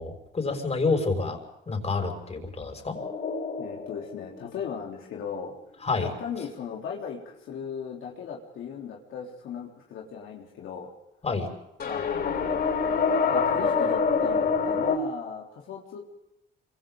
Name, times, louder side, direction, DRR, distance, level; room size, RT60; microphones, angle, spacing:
voice 1, 0.0-1.4 1.7-3.0 5.8-6.1 11.2-11.5, left 3 dB, 30° left, 4 dB, 5.7 m, -28 dB
sound 1, 2.9-5.3 11.8-15.0, left 5 dB, 55° left, 6.6 m, -26 dB
voice 2, 3.6-5.5 6.0-10.9 11.8-16.0, left 7 dB, 80° left, -2 dB, 3.7 m, -37 dB
27.0 x 25.5 x 3.9 m, 0.82 s
cardioid pair, 90°, 20 cm